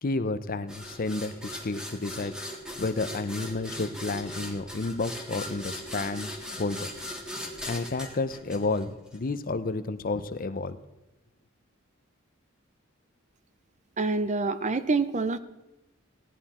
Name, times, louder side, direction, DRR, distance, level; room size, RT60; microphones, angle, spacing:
voice 1, 0.0-2.3 2.8-6.9 7.7-10.8, left 3 dB, 45° left, 12 dB, 0.7 m, -31 dB
sound 1, 0.7-9.2, left 1 dB, 5° right, 1.7 m, -39 dB
voice 2, 14.0-15.4, right 3 dB, 35° right, 13 dB, 0.6 m, -26 dB
16.5 x 11.0 x 4.3 m, 0.95 s
head